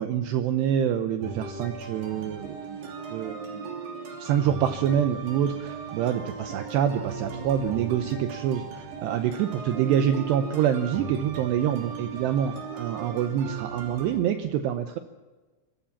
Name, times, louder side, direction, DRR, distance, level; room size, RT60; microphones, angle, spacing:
voice 1, 0.0-2.8 3.1-3.7 4.2-15.0, right 9 dB, 85° right, 8 dB, 2.4 m, -26 dB
sound 1, 1.2-14.2, right 5 dB, 55° right, 4.7 m, -37 dB
25.0 x 15.0 x 7.2 m, 1.2 s
omnidirectional pair, 5.9 m